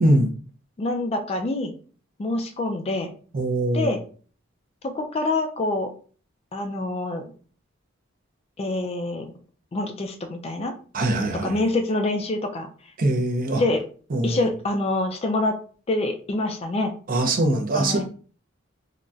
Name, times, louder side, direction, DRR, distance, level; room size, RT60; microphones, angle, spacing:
voice 1, 0.0-0.3 3.3-4.0 10.9-11.6 13.0-13.6 14.1-14.5 17.1-18.0, right 1 dB, 45° right, 0.5 m, -22 dB
voice 2, 0.8-1.7 2.2-3.1 3.7-4.0 4.8-5.9 6.5-7.2 8.6-9.3 9.7-10.7 11.4-12.7 13.6-13.8 14.2-15.5 15.9-16.9 17.7-18.0, left 2 dB, 30° left, 0.3 m, -26 dB
3.8 x 2.1 x 2.3 m
head